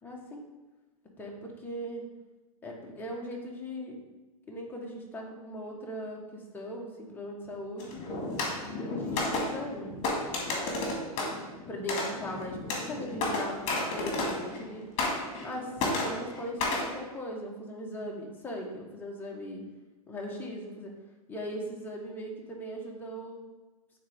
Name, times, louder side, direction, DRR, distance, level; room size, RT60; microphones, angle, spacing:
voice 1, 0.0-0.4 1.2-2.0 2.6-4.0 4.5-8.0 8.8-9.9 11.7-14.9 15.4-19.6 20.1-21.0 21.3-23.4, equal, 10° left, -2 dB, 1.2 m, -39 dB
sound 1, 7.8-14.7 15.0-15.5 15.8-16.9, left 2 dB, 35° left, 1.9 m, -32 dB
8.6 x 3.9 x 3.5 m, 1.2 s
hypercardioid pair, 120°, 19 cm